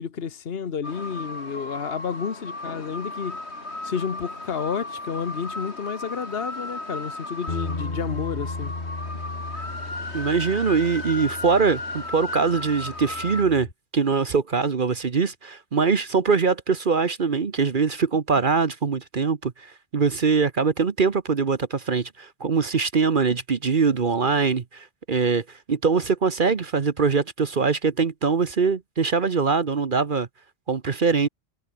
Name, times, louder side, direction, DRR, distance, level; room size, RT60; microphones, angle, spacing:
voice 1, 0.0-3.4 3.8-8.7, left 6 dB, 65° left, 1.5 m, -31 dB
sound 1, 0.8-13.4, left 2 dB, 80° left, 4.7 m, -35 dB
Bass guitar, 7.5-13.7, left 2 dB, 45° left, 2.7 m, -36 dB
voice 2, 10.1-13.7 13.9-30.3 30.7-31.3, right 5 dB, 50° right, 1.2 m, -23 dB
omnidirectional pair, 1.1 m